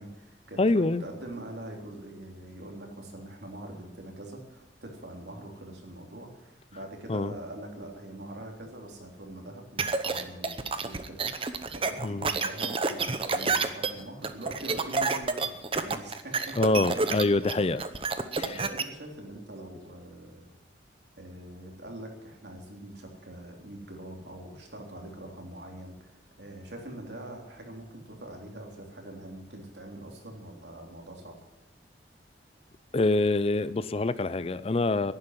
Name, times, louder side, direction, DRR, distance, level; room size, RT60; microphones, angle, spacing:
voice 1, 0.0-15.5 15.8-16.6 16.9-17.7 18.4-20.6 21.2-31.3, right 1 dB, 70° right, 1 dB, 3.4 m, -43 dB
voice 2, 0.6-1.0 7.1-7.3 12.0-12.3 16.6-17.8 32.9-35.1, left 2 dB, 35° left, 16 dB, 0.5 m, -25 dB
sound 1, 9.8-18.8, right 4 dB, 30° right, 0.8 m, -29 dB
11.0 x 11.0 x 9.8 m, 1.0 s
head